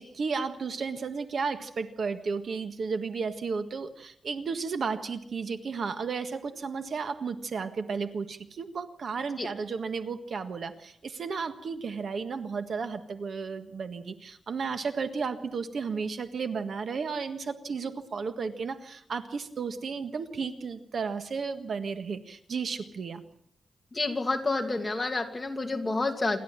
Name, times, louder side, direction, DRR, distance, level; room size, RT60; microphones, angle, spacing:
voice 1, 0.0-23.2, right 5 dB, 60° right, 9 dB, 1.6 m, -33 dB
voice 2, 23.9-26.4, left 3 dB, 20° left, 3 dB, 2.5 m, -29 dB
27.5 x 12.0 x 8.9 m, 0.69 s
wide cardioid pair, 130°, 0 cm